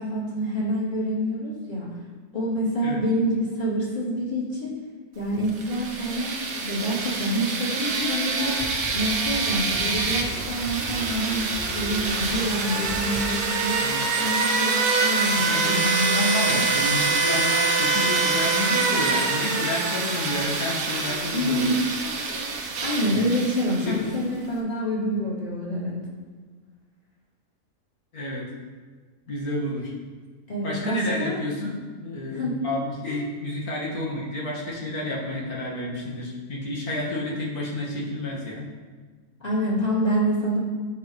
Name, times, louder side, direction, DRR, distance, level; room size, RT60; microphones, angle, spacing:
voice 1, 0.0-1.9 2.3-4.7 5.1-6.3 6.6-8.6 8.9-13.8 14.2-16.6 21.3-21.8 22.5-26.0 30.5-31.4 32.3-32.6 33.0-33.2 39.4-40.6, equal, 25° left, -8 dB, 2.8 m, -27 dB
sound 1, 5.5-24.2, right 4 dB, 90° right, 1.4 m, -25 dB
sound 2, 8.4-13.5, equal, 30° right, 1.3 m, -37 dB
voice 2, 15.4-21.7 23.8-24.0 28.1-28.4 29.3-29.9 30.6-38.6, left 1 dB, 75° left, -5 dB, 2.3 m, -30 dB
11.5 x 5.2 x 3.1 m, 1.4 s
omnidirectional pair, 1.6 m